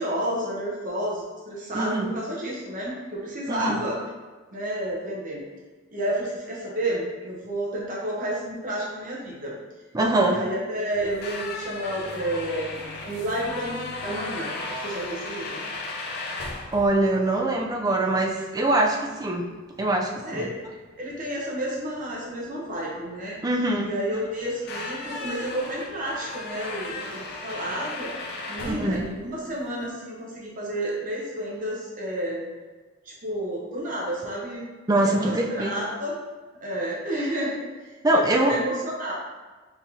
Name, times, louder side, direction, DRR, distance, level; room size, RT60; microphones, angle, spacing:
voice 1, 0.0-4.0 4.5-5.4 5.9-9.5 10.2-14.5 14.8-15.6 20.2-20.6 21.0-23.4 23.8-28.1 28.5-32.4 33.0-34.7 35.0-36.2 36.6-39.1, right 1 dB, 40° right, -5 dB, 0.9 m, -31 dB
voice 2, 1.7-2.1 3.5-3.8 9.9-10.4 16.7-19.5 19.8-20.5 23.4-23.9 28.7-29.1 34.9-35.7 38.0-38.6, right 1 dB, 20° right, 1 dB, 0.4 m, -23 dB
sound 1, 10.9-29.9, left 2 dB, 55° left, 0.5 m, -37 dB
4.6 x 3.5 x 2.7 m, 1.3 s
head